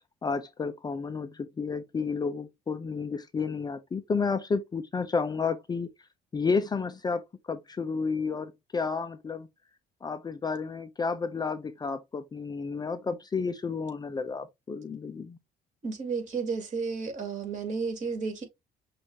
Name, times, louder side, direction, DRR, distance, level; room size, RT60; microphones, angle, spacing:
voice 1, 0.2-5.9 6.3-7.2 7.5-9.5 10.0-15.4, left 5 dB, 25° left, 0.5 m, -31 dB
voice 2, 15.8-18.4, right 5 dB, 45° right, 2.4 m, -32 dB
6.1 x 2.5 x 2.8 m
cardioid pair, 110°, 17 cm